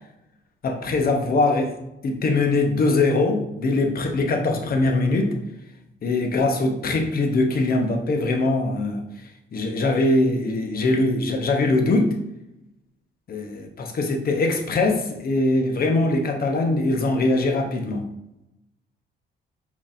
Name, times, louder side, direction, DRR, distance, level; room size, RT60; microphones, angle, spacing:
voice 1, 0.6-1.8 2.0-5.4 6.0-9.0 9.5-12.2 13.3-18.0, left 2 dB, 50° left, 4 dB, 0.8 m, -22 dB
4.8 x 3.5 x 2.5 m, 0.89 s
cardioid pair, 90°, 20 cm